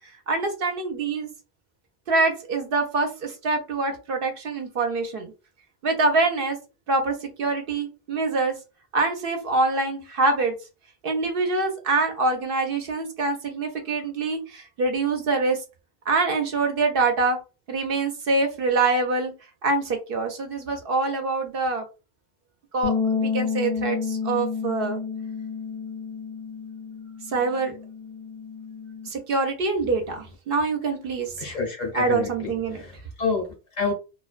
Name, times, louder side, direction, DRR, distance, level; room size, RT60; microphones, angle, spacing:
voice 1, 0.3-1.3 2.1-5.3 5.8-6.6 6.9-8.5 8.9-10.5 11.0-15.6 16.1-17.4 17.7-19.3 19.6-21.8 22.7-25.0 27.3-27.8 29.1-31.6 31.9-32.8, right 3 dB, 65° right, 0.7 m, -25 dB
sound 1, 22.8-29.1, left 5 dB, 85° left, 1.0 m, -30 dB
voice 2, 31.4-33.9, left 4 dB, 45° left, 0.7 m, -29 dB
2.4 x 2.1 x 2.4 m
omnidirectional pair, 1.1 m